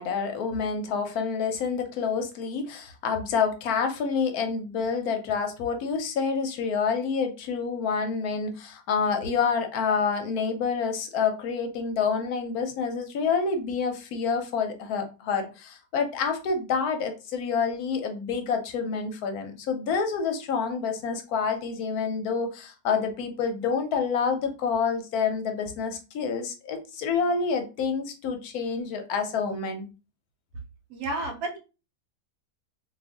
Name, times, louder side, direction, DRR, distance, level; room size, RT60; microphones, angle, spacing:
voice 1, 0.0-29.9, left 5 dB, 70° left, 1.0 m, -28 dB
voice 2, 30.9-31.6, right 2 dB, 70° right, 1.2 m, -31 dB
2.6 x 2.4 x 3.5 m
omnidirectional pair, 1.8 m